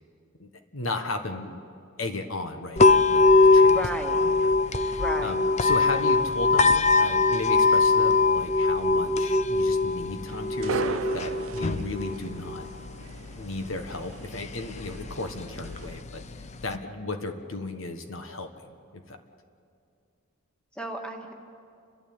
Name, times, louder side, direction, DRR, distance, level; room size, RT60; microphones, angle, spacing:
voice 1, 0.4-1.6 2.0-3.8 4.2-12.7 13.4-16.2 16.6-19.2, left 2 dB, 70° left, 6 dB, 1.4 m, -35 dB
sound 1, 2.8-16.8, left 3 dB, 35° left, 0.6 m, -23 dB
voice 2, 3.7-4.4 5.0-5.4 20.7-21.4, equal, 5° left, 3 dB, 1.8 m, -34 dB
sound 2, 10.3-16.0, right 6 dB, 70° right, 0.4 m, -38 dB
29.5 x 13.0 x 8.8 m, 2.5 s
head